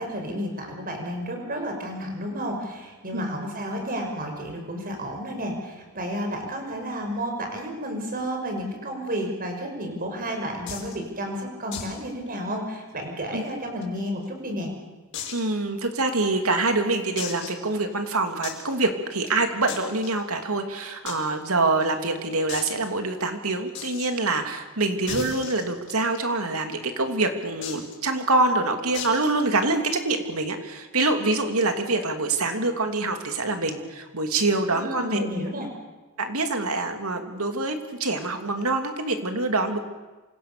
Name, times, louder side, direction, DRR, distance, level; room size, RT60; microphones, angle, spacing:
voice 1, 0.0-14.7 34.7-35.7, equal, 40° right, 3 dB, 5.7 m, -31 dB
sound 1, 10.7-10.9 11.7-12.0 12.3-12.4 12.7-12.8 13.5-14.3 15.1-15.5 16.1-16.2 17.2-17.7 18.4-18.6 19.7-20.1 21.1-21.2 21.4-21.5 21.8-21.9 22.5-22.7 23.7-24.1 25.1-26.2 27.6-27.9 28.9-29.3, left 6 dB, 55° left, 6.5 m, -35 dB
voice 2, 15.3-35.3 36.2-39.8, right 2 dB, 75° right, 5 dB, 3.0 m, -25 dB
27.5 x 26.0 x 7.0 m, 1.2 s
head